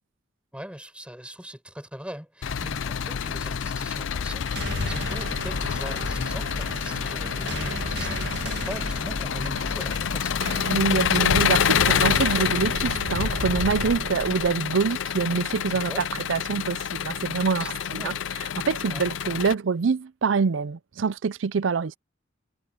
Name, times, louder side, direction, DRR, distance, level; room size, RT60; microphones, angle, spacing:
voice 1, 0.5-10.5 15.7-16.1 17.6-18.2 18.9-19.1, equal, 5° right, 7.8 m, -40 dB
Engine, 2.4-19.5, left 8 dB, 90° left, 0.5 m, -27 dB
sound 1, 4.3-14.5, right 2 dB, 65° right, 2.1 m, -35 dB
voice 2, 10.7-18.1 18.6-22.0, right 5 dB, 85° right, 0.5 m, -25 dB
head